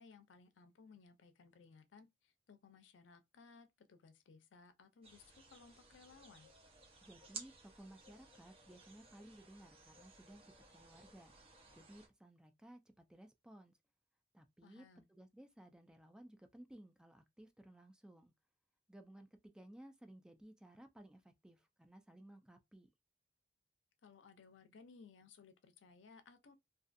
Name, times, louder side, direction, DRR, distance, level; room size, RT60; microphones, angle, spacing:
voice 1, 0.0-6.5 14.6-15.1 24.0-26.6, left 5 dB, 85° left, 0.5 m, -61 dB
sound 1, 5.0-12.1, right 4 dB, 30° right, 0.7 m, -57 dB
voice 2, 7.0-11.3 11.8-13.7 14.3-18.3 18.9-22.9, right 1 dB, 5° right, 0.3 m, -58 dB
2.5 x 2.3 x 2.5 m
head